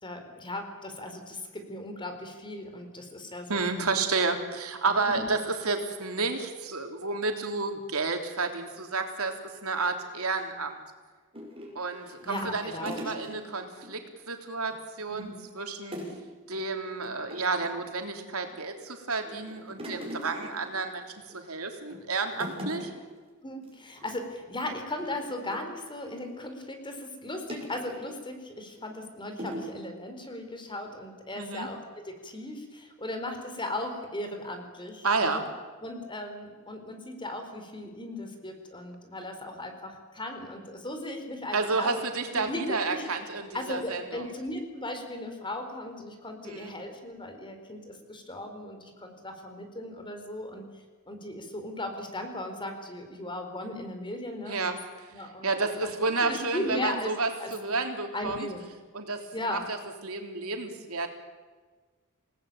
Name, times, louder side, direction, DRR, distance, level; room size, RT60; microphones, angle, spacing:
voice 1, 0.0-3.7 4.8-5.3 12.2-13.1 15.1-15.5 23.4-35.4 35.8-42.0 42.3-43.1 43.5-54.7 55.1-55.7 56.2-57.1 57.4-57.5 58.1-58.7 59.3-59.7, left 1 dB, 25° left, 6 dB, 4.2 m, -37 dB
voice 2, 3.5-10.8 11.7-14.0 14.3-16.0 16.5-22.9 31.4-31.7 35.0-35.4 41.5-44.3 46.4-46.7 54.5-54.8 55.0-55.1 55.4-58.5 58.9-59.8 60.0-61.1, right 3 dB, 85° right, 4 dB, 3.3 m, -31 dB
sound 1, 11.3-13.9 14.2-14.4 14.7-15.3 15.9-16.3 16.5-16.7 17.0-17.8 18.4-18.9 19.2-21.4 21.8-22.0 22.3-23.2 23.5-23.7 24.0-24.2 24.6-26.4 27.5-28.2 28.8-28.9 29.4-29.8, equal, 25° right, 6.7 m, -41 dB
28.0 x 18.5 x 9.0 m, 1.4 s
head